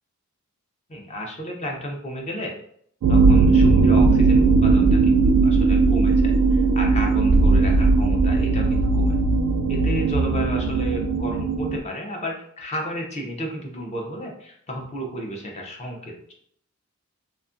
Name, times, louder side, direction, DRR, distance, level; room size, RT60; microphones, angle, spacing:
voice 1, 0.9-2.5 3.1-9.2 9.7-16.3, equal, 30° left, 1 dB, 0.5 m, -32 dB
sound 1, 3.0-11.8, right 3 dB, 75° right, 0.3 m, -18 dB
2.6 x 2.3 x 2.5 m, 0.66 s
head